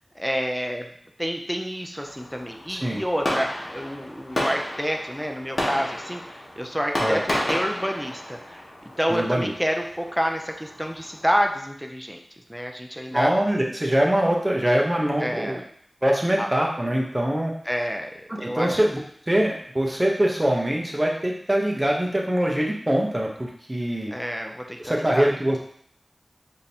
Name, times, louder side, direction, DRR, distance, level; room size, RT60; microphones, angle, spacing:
voice 1, 0.2-0.9 1.2-8.6 9.0-12.2 12.5-13.3 15.2-15.6 16.4-16.5 17.7-18.8 24.1-25.3, equal, ahead, 2 dB, 0.4 m, -28 dB
Fireworks, 2.0-11.4, left 1 dB, 50° left, 1.0 m, -32 dB
voice 2, 2.7-3.0 7.0-7.2 9.1-9.5 13.1-15.6 16.0-17.5 18.3-19.0 19.3-24.1 24.8-25.6, right 1 dB, 20° right, -1 dB, 0.8 m, -23 dB
5.0 x 2.7 x 2.8 m, 0.63 s
wide cardioid pair, 75°, 0 cm